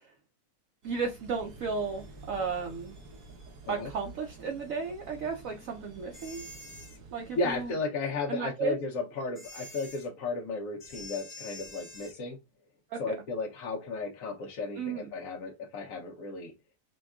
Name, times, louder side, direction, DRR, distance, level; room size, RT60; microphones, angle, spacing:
voice 1, 0.8-2.9 3.7-6.5 7.1-7.7 8.3-8.8 12.9-13.1 14.8-15.1, right 5 dB, 65° right, 0.9 m, -34 dB
sound 1, 0.8-7.8, right 3 dB, 85° right, 1.5 m, -50 dB
sound 2, 6.1-7.0 9.3-10.1 10.8-12.2, left 2 dB, 20° left, 0.9 m, -46 dB
voice 2, 7.4-12.4 13.0-16.5, left 3 dB, 70° left, 1.0 m, -34 dB
5.1 x 2.2 x 2.3 m
omnidirectional pair, 1.6 m